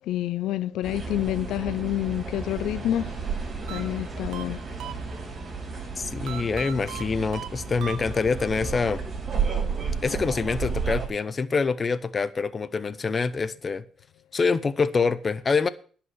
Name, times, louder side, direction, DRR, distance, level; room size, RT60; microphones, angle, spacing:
voice 1, 0.0-3.2 3.7-4.6, left 13 dB, 85° left, 0.5 m, -28 dB
sound 1, 0.8-11.1, right 5 dB, 45° right, 5.6 m, -32 dB
sound 2, 3.7-5.5 6.3-8.5, right 10 dB, 85° right, 0.9 m, -40 dB
voice 2, 6.0-9.0 10.0-13.8 14.3-15.7, left 4 dB, 35° left, 0.8 m, -25 dB
11.0 x 5.9 x 7.7 m
cardioid pair, 90°, 0 cm